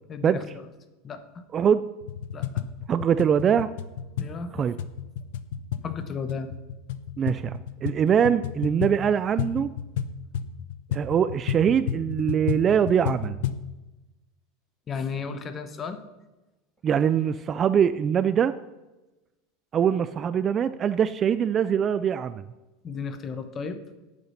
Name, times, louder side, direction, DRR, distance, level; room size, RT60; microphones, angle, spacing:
voice 1, 0.1-0.4 1.0-1.4 2.3-2.6 4.2-4.6 5.8-6.5 14.9-16.0 22.8-23.8, left 5 dB, 25° left, 10 dB, 1.0 m, -34 dB
voice 2, 1.5-1.8 2.9-3.7 4.5-4.7 7.2-9.7 10.9-13.4 16.8-18.5 19.7-22.4, right 8 dB, 25° right, 14 dB, 0.3 m, -23 dB
sound 1, 2.0-13.7, left 9 dB, 75° left, 0.7 m, -32 dB
10.5 x 8.6 x 5.7 m, 1.1 s
supercardioid pair, 155°, 0 cm